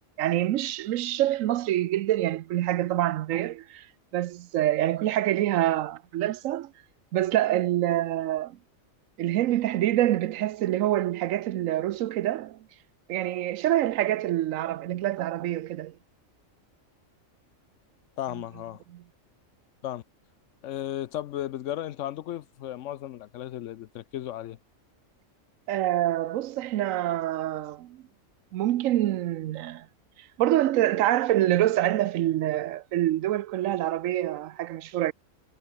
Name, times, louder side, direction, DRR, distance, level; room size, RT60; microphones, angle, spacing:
voice 1, 0.2-3.8 4.1-6.7 7.1-8.6 9.2-12.6 13.1-15.9 18.9-19.0 25.7-28.0 28.5-29.9 30.4-35.1, right 13 dB, 80° right, 1.0 m, -26 dB
voice 2, 18.2-18.8 19.8-20.0 20.6-24.6, left 12 dB, 70° left, 0.9 m, -35 dB
omnidirectional pair, 1.4 m